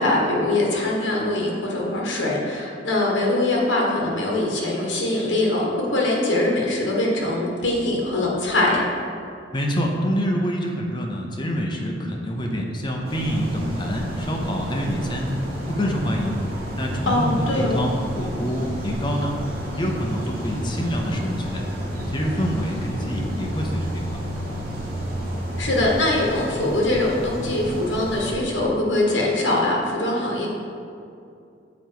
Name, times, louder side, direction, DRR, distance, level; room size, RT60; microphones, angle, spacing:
voice 1, 0.0-8.9 17.0-17.8 25.6-30.5, left 1 dB, 70° left, -2 dB, 1.4 m, -22 dB
voice 2, 9.5-15.3 15.7-16.3 16.7-19.3 19.8-21.6 22.1-24.0, equal, 25° left, 1 dB, 0.7 m, -26 dB
sound 1, 13.0-28.3, equal, 50° right, 1.6 m, -31 dB
7.2 x 4.5 x 4.7 m, 2.5 s
head